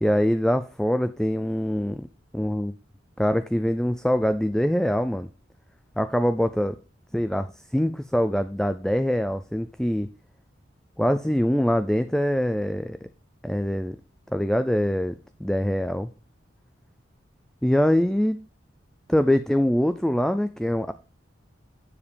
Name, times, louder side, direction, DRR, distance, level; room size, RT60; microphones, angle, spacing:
voice 1, 0.0-2.1 2.3-2.7 3.2-5.3 6.0-6.8 7.1-10.1 11.0-13.1 13.4-14.0 14.3-15.1 15.4-16.1 17.6-18.4 19.1-20.9, equal, 5° left, 11 dB, 0.3 m, -23 dB
9.6 x 7.3 x 3.4 m, 0.36 s
head